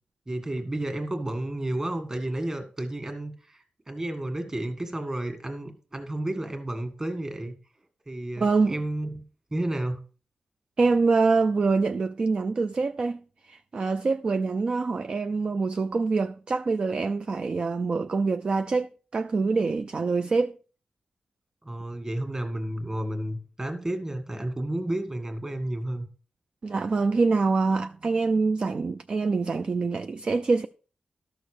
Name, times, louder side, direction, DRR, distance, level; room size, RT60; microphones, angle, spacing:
voice 1, 0.3-7.5 8.1-9.2 9.5-10.0 21.6-26.0, right 1 dB, 20° right, 1.7 m, -31 dB
voice 2, 8.4-8.7 10.8-20.6 26.6-30.7, right 4 dB, 40° right, 0.4 m, -25 dB
13.0 x 6.4 x 4.9 m
wide cardioid pair, 155°, 3 cm